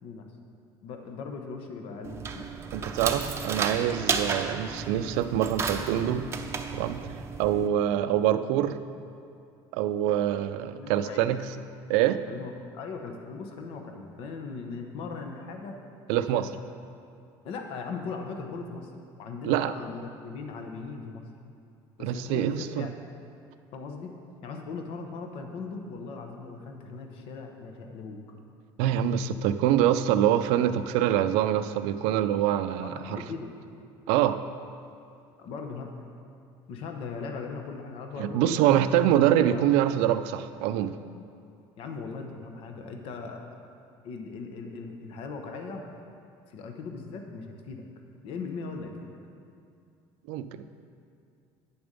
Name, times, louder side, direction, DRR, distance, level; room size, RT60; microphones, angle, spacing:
voice 1, 0.8-2.5 10.8-11.3 12.3-15.8 16.1-16.5 17.4-18.9 19.2-21.2 22.0-22.9 23.7-24.1 24.4-28.2 32.8-33.5 35.4-35.9 36.7-39.0 39.5-39.7 41.8-43.5 44.0-46.0 46.5-47.8 48.2-49.1, left 4 dB, 65° left, 4 dB, 1.0 m, -39 dB
sound 1, 2.0-7.7, right 5 dB, 25° right, 0.6 m, -33 dB
voice 2, 2.7-6.2 6.7-7.0 7.4-8.8 9.7-11.4 11.9-12.2 16.1-16.5 19.4-19.7 22.0-22.9 28.8-33.2 34.1-34.4 38.2-41.0 50.3-50.6, right 11 dB, 90° right, 11 dB, 0.5 m, -25 dB
9.7 x 6.9 x 5.3 m, 2.5 s
cardioid pair, 140°, 10 cm